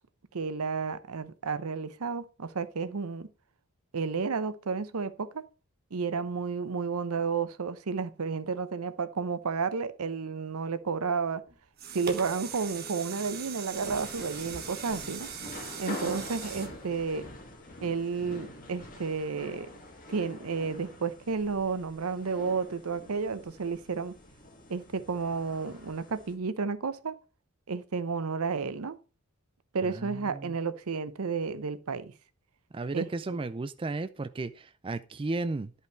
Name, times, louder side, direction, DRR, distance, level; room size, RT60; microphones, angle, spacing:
voice 1, 0.3-3.3 3.9-5.4 5.9-11.4 11.9-15.3 15.8-17.3 17.8-19.7 20.1-24.1 24.7-27.2 27.7-29.0 29.7-32.1 32.9-33.4, right 5 dB, 80° right, 0.7 m, -32 dB
sound 1, 11.5-17.8 18.3-18.4, right 6 dB, 45° right, 1.2 m, -41 dB
sound 2, 13.7-26.3, left 1 dB, 40° left, 2.0 m, -45 dB
voice 2, 29.8-30.5 32.7-35.7, right 2 dB, 25° right, 0.3 m, -34 dB
10.5 x 5.6 x 4.5 m
head